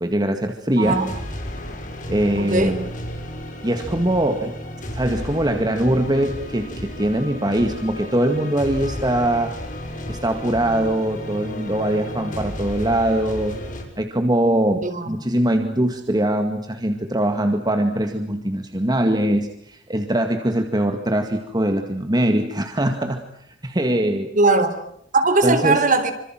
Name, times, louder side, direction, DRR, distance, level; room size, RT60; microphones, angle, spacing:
voice 1, 0.0-1.0 2.1-2.9 3.6-4.5 4.9-9.6 10.1-13.6 14.0-23.3 23.6-24.3 25.4-25.8, right 1 dB, 20° right, 2.1 m, -22 dB
sound 1, 0.8-13.8, left 1 dB, 45° left, 6.5 m, -33 dB
voice 2, 0.8-1.1 2.4-2.8 14.8-15.1 24.3-24.7 25.1-26.1, right 3 dB, 45° right, 4.0 m, -19 dB
27.0 x 26.5 x 7.6 m
head